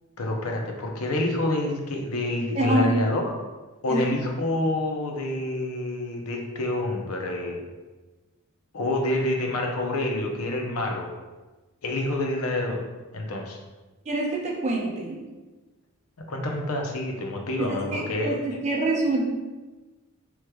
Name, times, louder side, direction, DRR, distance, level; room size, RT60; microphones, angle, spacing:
voice 1, 0.2-3.3 3.8-7.6 8.7-11.1 11.8-12.9 13.1-13.6 16.3-18.3, left 1 dB, 75° left, 1 dB, 0.6 m, -27 dB
voice 2, 2.6-2.9 3.9-4.0 14.1-15.2 17.6-19.3, right 2 dB, 30° right, -1 dB, 0.6 m, -26 dB
4.7 x 3.1 x 2.2 m, 1.2 s
head